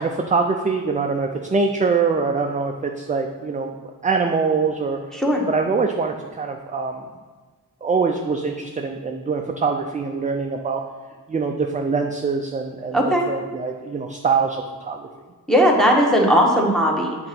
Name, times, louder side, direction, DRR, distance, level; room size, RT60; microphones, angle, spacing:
voice 1, 0.0-3.7 4.0-5.0 5.5-7.0 7.8-10.8 11.3-13.0 13.3-15.1, right 4 dB, 20° right, 3 dB, 0.3 m, -23 dB
voice 2, 5.1-5.4 12.9-13.2 15.5-17.2, equal, ahead, -1 dB, 1.0 m, -17 dB
8.2 x 3.8 x 5.8 m, 1.4 s
wide cardioid pair, 145°, 38 cm